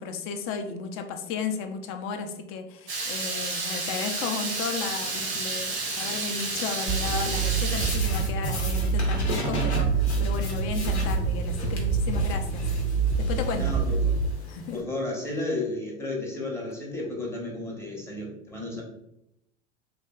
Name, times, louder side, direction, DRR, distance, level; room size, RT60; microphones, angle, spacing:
voice 1, 0.0-12.7 13.2-13.7 14.4-14.8, left 5 dB, 40° left, 6 dB, 0.4 m, -34 dB
Water tap faucet / Liquid, 2.9-8.0, right 3 dB, 90° right, 0.8 m, -31 dB
sound 1, 5.0-14.8, left 1 dB, 90° left, 0.7 m, -37 dB
sound 2, 6.9-14.3, right 5 dB, 50° right, 0.4 m, -26 dB
voice 2, 13.5-14.2 14.7-18.8, left 2 dB, 10° left, -2 dB, 0.7 m, -33 dB
2.7 x 2.4 x 2.2 m, 0.82 s
hypercardioid pair, 85°, 33 cm